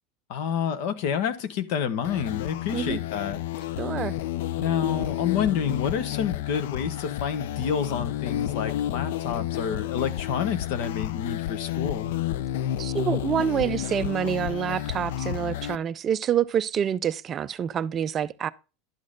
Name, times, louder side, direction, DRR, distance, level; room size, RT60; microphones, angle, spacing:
voice 1, 0.3-3.7 4.6-12.1, left 7 dB, 65° left, 1.2 m, -29 dB
sound 1, 2.0-15.8, left 13 dB, 80° left, 0.4 m, -31 dB
voice 2, 3.8-4.1 12.8-18.5, right 9 dB, 25° right, 0.3 m, -27 dB
11.5 x 6.4 x 3.7 m
supercardioid pair, 150°, 0 cm